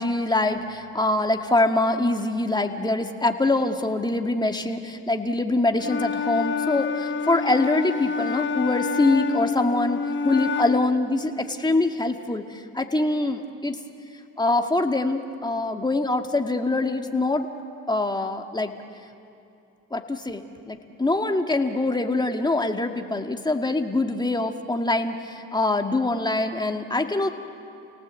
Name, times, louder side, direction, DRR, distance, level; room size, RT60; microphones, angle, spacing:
voice 1, 0.0-13.8 14.4-17.5 17.9-18.7 19.9-27.3, left 2 dB, 10° left, 5 dB, 2.0 m, -24 dB
Wind instrument woodwind instrument, 5.8-11.0, left 5 dB, 35° left, 1.2 m, -28 dB
29.5 x 18.0 x 8.3 m, 2.7 s
cardioid pair, 85°, 35 cm